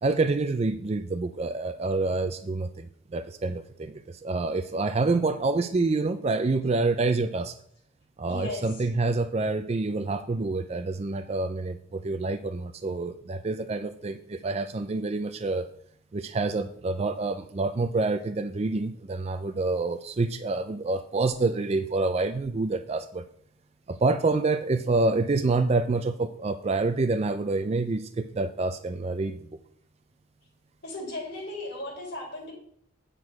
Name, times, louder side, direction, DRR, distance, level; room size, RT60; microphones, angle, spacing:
voice 1, 0.0-7.5 8.2-15.7 16.1-23.3 23.9-29.4, right 3 dB, 35° right, 9 dB, 0.4 m, -27 dB
voice 2, 8.3-8.8 30.8-32.5, left 2 dB, 55° left, -3 dB, 3.7 m, -36 dB
9.0 x 6.2 x 4.8 m, 0.65 s
head